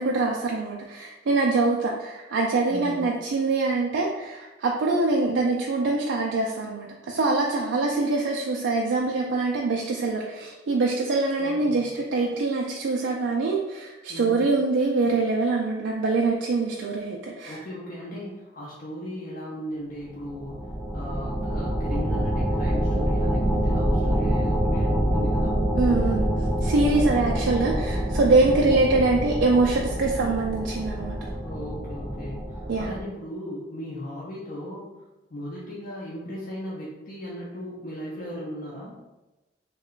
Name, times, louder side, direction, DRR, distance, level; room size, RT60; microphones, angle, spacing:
voice 1, 0.0-17.6 25.7-26.3 26.6-31.2 32.7-33.1, right 3 dB, 85° right, -1 dB, 0.4 m, -24 dB
voice 2, 2.7-3.1 11.4-12.0 14.1-14.5 17.4-20.6 20.9-25.6 26.9-27.3 28.4-28.7 31.4-34.9 35.3-39.0, equal, 50° left, -6 dB, 0.6 m, -37 dB
sound 1, 20.2-33.0, right 1 dB, 5° right, 0.3 m, -26 dB
3.1 x 2.2 x 3.7 m, 1.1 s
head